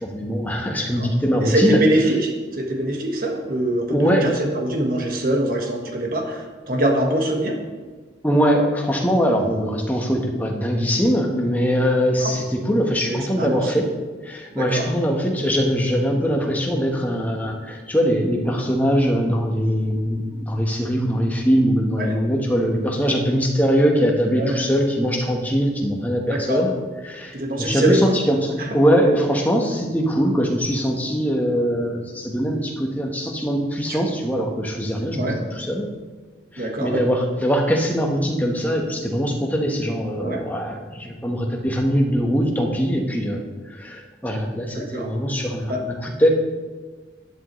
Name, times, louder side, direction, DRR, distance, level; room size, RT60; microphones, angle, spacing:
voice 1, 0.0-1.8 3.9-4.3 8.2-13.9 14.2-26.7 27.0-35.9 36.5-46.3, equal, 10° left, 0 dB, 1.2 m, -22 dB
voice 2, 1.4-7.6 13.0-13.6 14.5-14.8 22.0-22.2 24.4-24.6 26.3-26.6 27.3-28.1 28.6-28.7 33.9-34.0 35.2-35.4 36.6-37.0 40.2-40.4 44.7-45.1 45.7-45.8, right 1 dB, 50° right, 2 dB, 1.5 m, -23 dB
12.0 x 10.5 x 3.2 m, 1.4 s
head